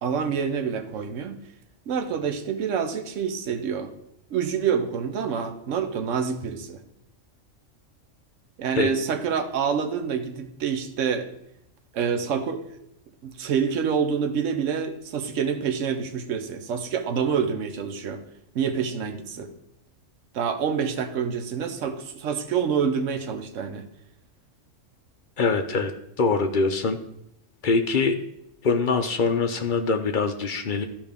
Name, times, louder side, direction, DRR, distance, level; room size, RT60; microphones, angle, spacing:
voice 1, 0.0-1.4 1.9-3.9 4.3-6.8 8.6-11.3 11.9-12.7 13.2-18.2 18.5-19.5 20.3-23.9, right 6 dB, 70° right, 8 dB, 1.1 m, -27 dB
voice 2, 25.4-25.9 26.2-27.0 27.6-28.1 28.6-30.8, left 4 dB, 55° left, 7 dB, 0.6 m, -23 dB
12.5 x 5.1 x 3.5 m, 0.77 s
omnidirectional pair, 1.4 m